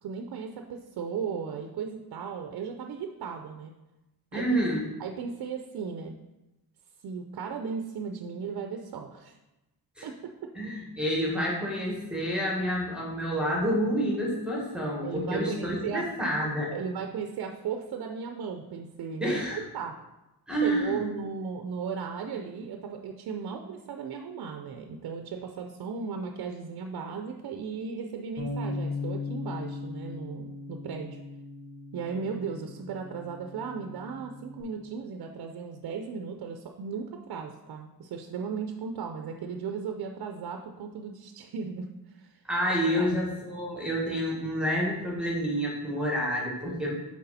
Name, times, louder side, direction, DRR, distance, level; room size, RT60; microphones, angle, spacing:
voice 1, 0.0-3.7 4.3-4.6 5.0-6.1 7.0-9.4 10.0-10.5 15.0-16.1 16.7-19.9 20.5-31.2 31.9-42.4 42.9-43.1, right 6 dB, 70° right, 5 dB, 0.7 m, -36 dB
voice 2, 4.3-4.9 10.0-10.1 10.5-16.7 19.2-19.6 20.5-21.1 42.5-46.9, equal, ahead, -3 dB, 1.7 m, -28 dB
Bass guitar, 28.4-34.6, left 3 dB, 85° left, 1.5 m, -38 dB
6.7 x 4.8 x 4.1 m, 0.99 s
cardioid pair, 95°, 38 cm